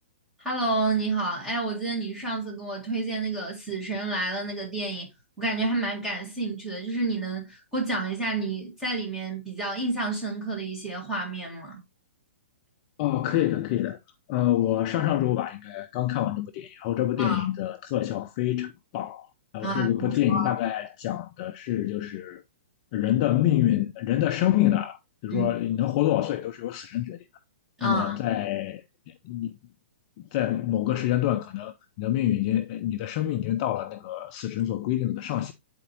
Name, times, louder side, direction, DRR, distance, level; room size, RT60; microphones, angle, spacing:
voice 1, 0.4-5.1 5.4-11.8 17.2-17.5 19.6-20.5 25.3-25.5 27.8-28.1, right 2 dB, 5° right, 1.7 m, -30 dB
voice 2, 13.0-14.0 14.3-19.3 19.5-22.4 22.9-27.2 27.8-29.6 30.2-35.5, left 13 dB, 30° left, 0.4 m, -26 dB
9.0 x 4.2 x 2.8 m
hypercardioid pair, 160°, 7 cm